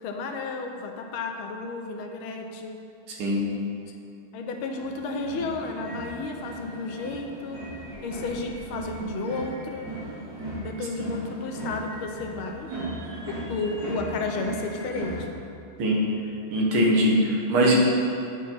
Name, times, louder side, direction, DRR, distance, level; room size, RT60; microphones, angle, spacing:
voice 1, 0.0-2.8 3.9-4.0 4.3-7.6 8.0-9.9 10.5-12.7 13.3-15.3, left 3 dB, 85° left, 4 dB, 1.6 m, -32 dB
voice 2, 3.1-3.4 15.8-16.0 16.5-17.8, right 1 dB, 80° right, -2 dB, 2.1 m, -21 dB
sound 1, 4.7-15.2, right 2 dB, 55° right, 3.0 m, -37 dB
8.9 x 4.6 x 5.4 m, 2.5 s
omnidirectional pair, 2.3 m